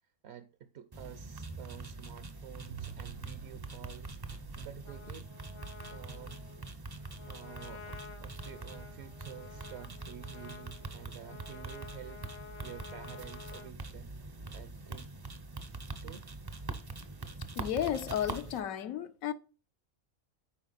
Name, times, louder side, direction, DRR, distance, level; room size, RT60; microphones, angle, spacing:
voice 1, 0.2-5.3 5.9-6.4 7.3-12.2 12.6-15.1 16.0-16.3, right 10 dB, 60° right, 0.7 m, -50 dB
sound 1, 0.9-18.6, right 3 dB, 30° right, 0.4 m, -44 dB
sound 2, 2.7-10.1, right 10 dB, 85° right, 1.1 m, -52 dB
Trumpet, 4.8-13.7, left 6 dB, 35° left, 0.5 m, -51 dB
voice 2, 17.6-19.3, left 10 dB, 75° left, 1.0 m, -33 dB
8.7 x 4.7 x 4.0 m
omnidirectional pair, 1.5 m